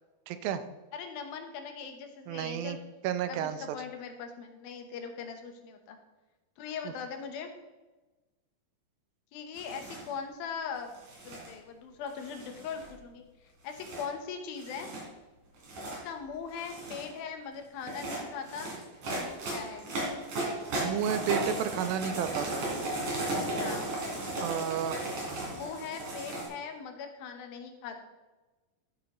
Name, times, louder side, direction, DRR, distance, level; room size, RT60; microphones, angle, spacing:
voice 1, 0.3-0.6 2.3-2.8 3.0-3.6 20.8-22.5 24.4-25.0, right 9 dB, 80° right, 10 dB, 2.4 m, -31 dB
voice 2, 0.9-2.8 3.2-6.0 6.6-7.5 9.3-10.9 11.2-13.2 13.6-14.9 15.8-18.7 19.3-19.9 23.6-23.9 25.5-28.0, left 6 dB, 80° left, 5 dB, 2.9 m, -40 dB
sound 1, 9.6-10.1 10.9-11.5 12.2-13.0 13.7-14.0 14.6-15.0 15.5-16.0 16.5-17.1 17.8-26.5, right 1 dB, 60° right, 4.3 m, -35 dB
13.0 x 8.5 x 3.0 m, 1.2 s
omnidirectional pair, 4.2 m